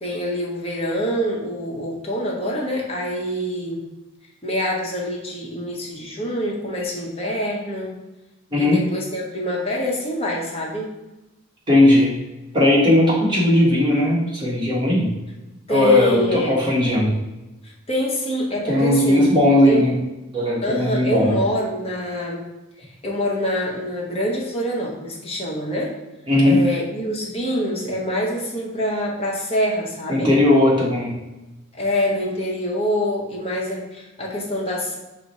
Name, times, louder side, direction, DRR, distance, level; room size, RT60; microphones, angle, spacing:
voice 1, 0.0-3.8 4.4-7.9 8.5-10.9 15.7-16.6 17.6-19.2 19.7-19.9 20.6-22.4 22.8-25.9 26.4-30.3 31.8-35.0, equal, 25° left, -2 dB, 0.8 m, -25 dB
voice 2, 11.7-12.1 12.5-15.1 15.7-17.1 18.7-20.0 20.3-21.3 26.3-26.6 30.1-31.2, left 1 dB, 20° right, -6 dB, 1.2 m, -17 dB
4.8 x 2.1 x 4.1 m, 1.0 s
head